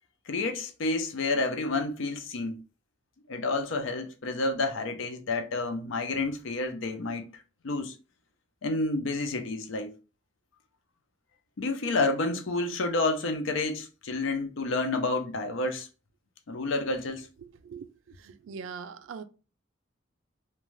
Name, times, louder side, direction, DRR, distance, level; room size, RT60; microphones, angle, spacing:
voice 1, 0.3-2.6 3.3-7.9 8.6-10.0 11.6-15.9 16.5-17.3, left 2 dB, 75° left, 0.5 m, -30 dB
voice 2, 17.4-19.2, right 6 dB, 75° right, 0.3 m, -42 dB
2.5 x 2.2 x 3.1 m
head